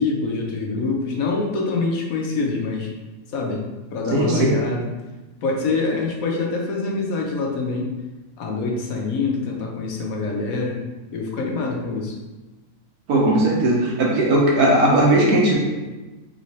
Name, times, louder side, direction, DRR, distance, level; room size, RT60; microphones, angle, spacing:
voice 1, 0.0-2.9 3.3-4.9 5.4-7.9 8.4-10.8 11.1-12.2, left 3 dB, 70° left, 0 dB, 1.2 m, -25 dB
voice 2, 4.1-4.5 13.1-15.6, right 1 dB, 85° right, -3 dB, 1.6 m, -17 dB
3.7 x 3.1 x 4.1 m, 1.1 s
omnidirectional pair, 1.6 m